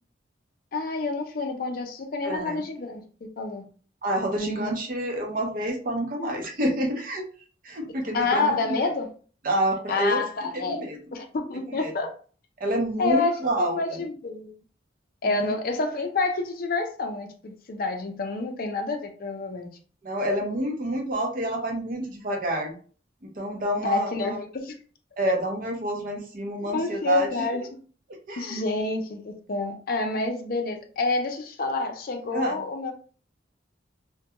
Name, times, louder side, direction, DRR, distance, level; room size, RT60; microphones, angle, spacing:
voice 1, 0.7-3.0 3.4-3.6 4.4-4.8 8.1-9.1 9.9-12.1 13.0-14.5 15.2-19.7 23.8-24.3 24.6-24.8 26.6-27.7 28.4-32.9, left 3 dB, 55° left, 3 dB, 0.5 m, -28 dB
voice 2, 2.2-2.6 4.0-7.2 7.6-8.7 9.4-10.2 10.5-11.0 11.7-11.9 12.6-14.0 15.2-15.4 20.0-22.7 23.2-24.4 25.2-27.5 28.3-28.6 32.3-32.6, right 1 dB, 50° right, 2 dB, 0.6 m, -28 dB
2.2 x 2.2 x 2.8 m, 0.41 s
head